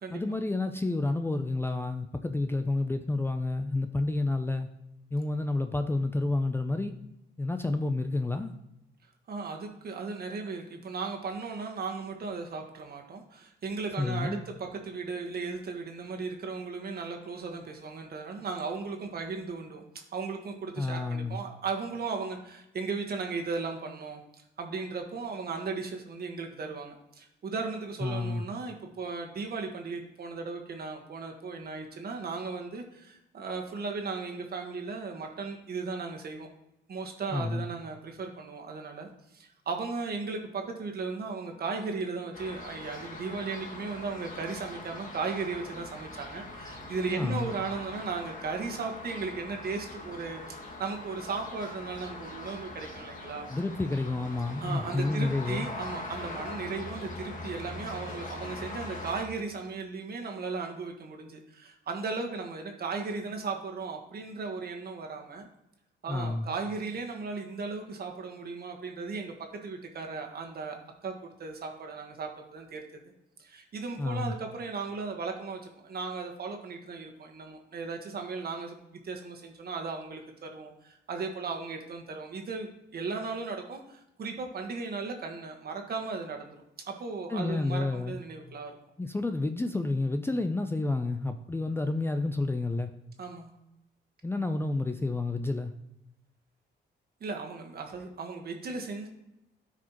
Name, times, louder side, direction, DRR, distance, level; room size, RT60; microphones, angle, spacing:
voice 1, 0.1-4.7 5.1-6.9 7.4-8.5 14.0-14.4 20.8-21.4 28.0-28.5 37.3-37.6 47.1-47.5 53.5-55.7 66.1-66.5 74.0-74.3 87.3-88.2 89.0-92.9 94.2-95.7, left 2 dB, 10° left, 7 dB, 0.4 m, -30 dB
voice 2, 9.3-19.8 20.1-24.2 24.6-36.5 36.9-53.5 54.6-65.5 66.0-69.3 69.6-70.7 71.0-72.8 73.4-78.8 79.0-86.6 86.8-88.7 93.2-93.5 97.2-99.1, right 4 dB, 50° right, 2 dB, 1.5 m, -36 dB
sound 1, 42.3-59.2, left 2 dB, 40° left, 1.5 m, -42 dB
13.0 x 4.9 x 3.0 m, 0.85 s
cardioid pair, 90°, 20 cm